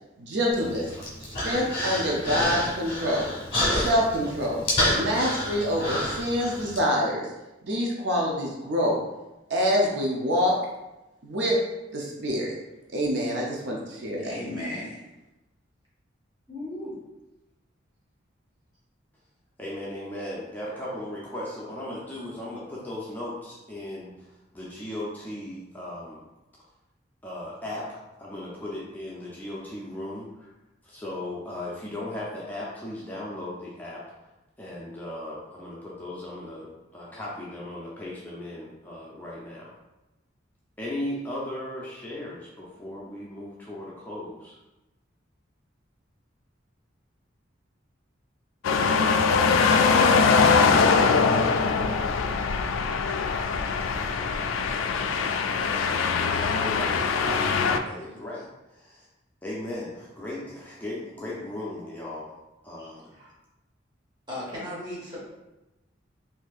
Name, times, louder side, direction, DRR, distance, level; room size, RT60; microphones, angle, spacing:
voice 1, 0.2-0.9 1.2-3.3 3.7-4.6 4.9-7.3 7.6-9.0 9.5-10.5 11.2-11.6 11.9-12.5 12.9-14.3, equal, 60° right, -2 dB, 0.5 m, -26 dB
Human voice, 0.5-6.8, left 1 dB, 30° left, 1.1 m, -29 dB
voice 2, 14.2-15.1 16.5-17.0 62.8-63.3 64.3-65.2, left 1 dB, 25° right, -7 dB, 1.2 m, -36 dB
voice 3, 19.6-24.1 24.5-26.2 27.2-30.5 30.8-34.0 34.6-36.7 36.9-39.7 40.8-44.6 55.8-57.4 57.8-59.1 59.4-62.3 62.6-63.1, left 1 dB, 10° left, -6 dB, 0.5 m, -37 dB
sound 1, 48.6-57.8, left 5 dB, 90° left, 0.3 m, -22 dB
4.2 x 2.6 x 2.4 m, 0.99 s
head